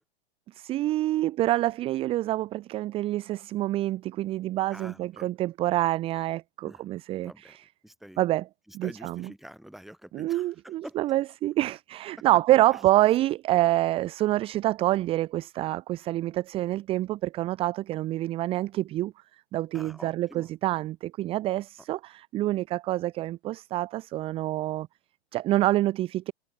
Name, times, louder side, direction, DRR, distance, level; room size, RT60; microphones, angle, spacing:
voice 1, 0.5-7.7 8.2-8.5 8.7-9.3 10.1-19.1 19.5-24.9 25.3-26.3, right 15 dB, 20° right, 0.5 m, -27 dB
voice 2, 4.7-5.3 6.6-6.9 7.2-7.6 7.8-8.2 8.7-11.0 19.7-20.5, equal, ahead, 1.7 m, -46 dB
hypercardioid pair, 135°, 32 cm